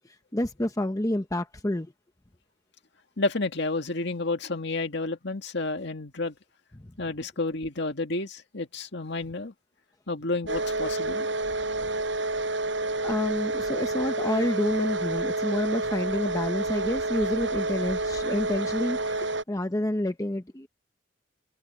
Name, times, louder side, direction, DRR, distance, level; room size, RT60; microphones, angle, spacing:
voice 1, 0.0-1.9 6.8-6.9 12.0-12.1 13.0-20.7, left 1 dB, 15° left, 0.8 m, -29 dB
voice 2, 3.2-6.3 7.0-9.5 10.1-11.3, left 2 dB, 60° left, 2.1 m, -30 dB
sound 1, 10.5-19.4, right 2 dB, 65° right, 6.3 m, -29 dB
head